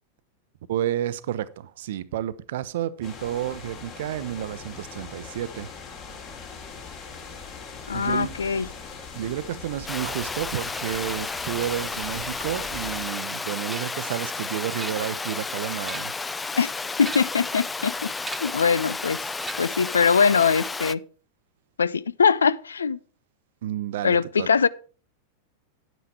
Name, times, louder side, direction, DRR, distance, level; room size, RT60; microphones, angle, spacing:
voice 1, 0.7-5.7 7.9-8.3 9.1-16.1 23.6-24.5, right 11 dB, 55° right, 0.7 m, -31 dB
sound 1, 3.0-13.1, left 5 dB, 40° left, 3.2 m, -41 dB
voice 2, 7.9-8.7 16.6-16.7 17.0-18.1 18.4-19.2 19.6-21.0 21.8-23.0 24.0-24.7, left 6 dB, 70° left, 0.4 m, -22 dB
Water, 9.9-20.9, left 3 dB, 10° left, 0.4 m, -32 dB
sound 2, 13.7-14.1 14.8-15.4 15.7-16.3 17.0-17.5 18.2-18.7 19.4-19.9, right 2 dB, 10° right, 0.8 m, -39 dB
9.3 x 9.2 x 4.7 m
figure-of-eight pair, 90°, 0 cm